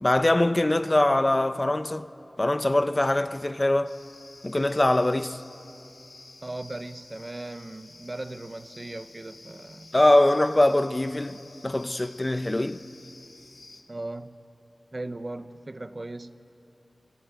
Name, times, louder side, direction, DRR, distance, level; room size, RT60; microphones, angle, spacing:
voice 1, 0.0-2.1 2.4-3.9 4.4-5.4 9.9-11.4 11.6-12.8, left 1 dB, 30° left, 0.8 m, -22 dB
sound 1, 3.8-13.8, left 3 dB, 80° left, 2.0 m, -51 dB
voice 2, 6.4-9.9 13.9-14.4 14.9-16.5, right 2 dB, 40° right, 0.9 m, -38 dB
27.0 x 21.0 x 9.4 m
wide cardioid pair, 60°, 0 cm